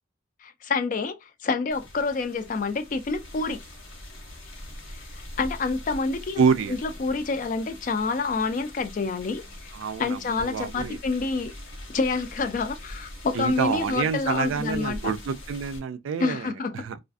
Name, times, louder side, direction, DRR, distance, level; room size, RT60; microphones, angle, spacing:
voice 1, 0.4-3.6 4.9-6.4 6.7-9.7 10.0-11.5 11.9-15.1 16.2-16.7, left 4 dB, 40° left, 0.3 m, -28 dB
sound 1, 1.7-15.8, left 1 dB, 85° left, 1.1 m, -43 dB
voice 2, 6.4-6.8 9.7-11.0 13.3-17.0, right 6 dB, 80° right, 0.3 m, -27 dB
2.4 x 2.4 x 2.3 m
head